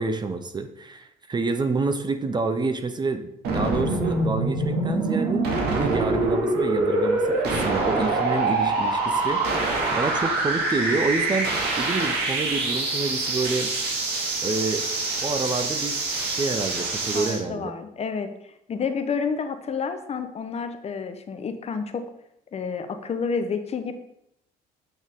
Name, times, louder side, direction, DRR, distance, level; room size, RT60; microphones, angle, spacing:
voice 1, 0.0-13.7 14.4-14.8 15.2-16.0 16.3-17.7, right 3 dB, 25° right, 9 dB, 0.7 m, -28 dB
sound 1, 3.4-17.4, right 2 dB, 75° right, 2.1 m, -25 dB
voice 2, 17.1-18.3 18.7-22.0 22.5-23.9, left 5 dB, 40° left, 8 dB, 0.9 m, -29 dB
8.2 x 6.4 x 3.6 m, 0.79 s
cardioid pair, 110°, 17 cm